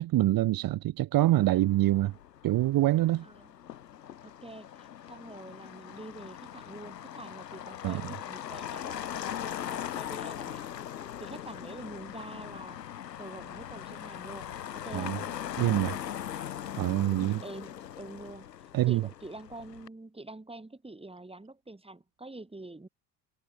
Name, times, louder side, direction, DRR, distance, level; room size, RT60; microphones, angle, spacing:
voice 1, 0.0-2.1 2.4-3.3 7.8-8.0 14.9-15.2 15.6-16.0 16.8-17.4 18.7-19.1, right 15 dB, 45° right, 1.4 m, -25 dB
Motor vehicle (road), 1.1-19.9, left 10 dB, 80° left, 0.9 m, -40 dB
voice 2, 3.2-3.5 4.2-10.7 11.2-12.8 13.2-14.5 14.8-15.2 17.2-18.5 18.9-22.9, right 2 dB, 10° right, 7.7 m, -46 dB
figure-of-eight pair, 55°, 49 cm